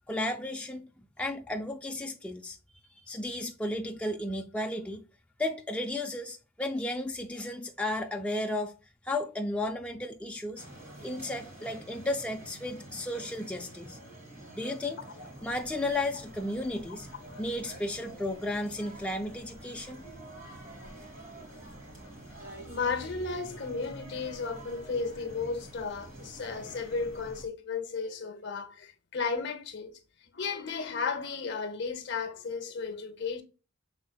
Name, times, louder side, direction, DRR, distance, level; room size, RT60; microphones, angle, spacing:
voice 1, 0.1-0.9 1.2-2.6 3.0-5.0 5.4-8.7 9.0-10.6 11.0-14.0 14.6-15.0 15.4-17.1 17.4-20.0, left 1 dB, 5° left, 0.3 m, -33 dB
sound 1, 10.6-27.4, right 1 dB, 35° right, 2.0 m, -48 dB
sound 2, 15.3-27.5, equal, 80° right, 1.4 m, -54 dB
voice 2, 22.7-29.9 30.3-33.4, left 4 dB, 60° left, 0.7 m, -34 dB
6.3 x 3.5 x 2.2 m
head